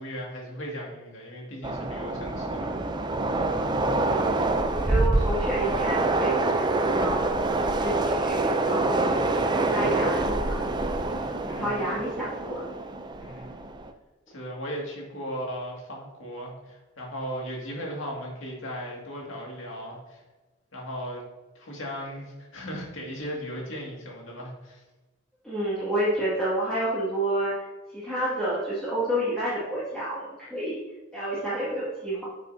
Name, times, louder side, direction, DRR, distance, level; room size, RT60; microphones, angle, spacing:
voice 1, 0.0-2.7 11.4-12.0 13.2-13.6 14.3-20.2 20.7-21.2 21.6-24.8, equal, 70° left, -1 dB, 2.2 m, -37 dB
Train, 1.6-13.9, right 2 dB, 20° right, 0.4 m, -26 dB
voice 2, 4.0-6.6 6.9-7.2 7.8-9.3 9.6-10.6 11.5-12.7 25.4-27.6 27.9-30.8 31.1-32.2, right 1 dB, 5° left, -11 dB, 2.1 m, -29 dB
9.0 x 6.6 x 2.8 m, 1.2 s
head